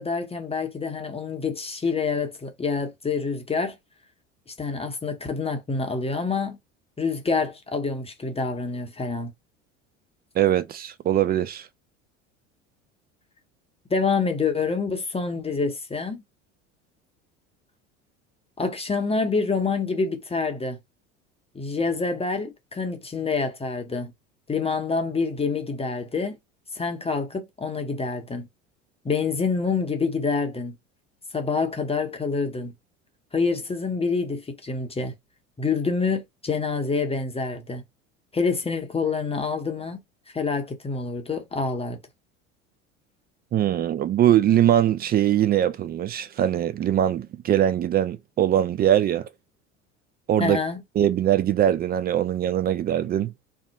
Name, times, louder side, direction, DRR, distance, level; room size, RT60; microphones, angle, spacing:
voice 1, 0.0-3.8 4.6-6.6 7.0-9.3 13.9-16.2 18.6-20.8 21.5-24.1 24.5-26.4 26.7-28.5 29.0-30.7 31.3-32.7 33.3-35.1 35.6-37.8 38.3-40.0 40.3-42.0 50.4-50.8, left 4 dB, 15° left, 0.7 m, -27 dB
voice 2, 10.4-11.7 43.5-49.3 50.3-50.6 51.0-53.3, right 11 dB, 25° right, 0.4 m, -22 dB
2.7 x 2.1 x 3.9 m
hypercardioid pair, 75°, 36 cm